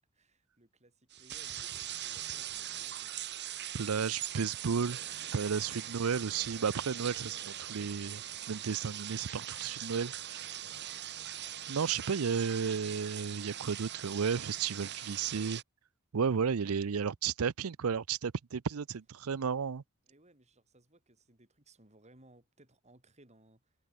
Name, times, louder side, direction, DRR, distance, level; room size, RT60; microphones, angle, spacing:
voice 1, 0.1-4.2 6.0-6.7 20.0-23.8, right 1 dB, 30° right, 6.4 m, -64 dB
sound 1, 1.1-15.6, right 11 dB, 55° right, 2.7 m, -41 dB
voice 2, 3.7-5.0 5.3-8.2 8.5-10.6 11.7-15.6 16.1-19.8, right 6 dB, 85° right, 0.6 m, -33 dB
head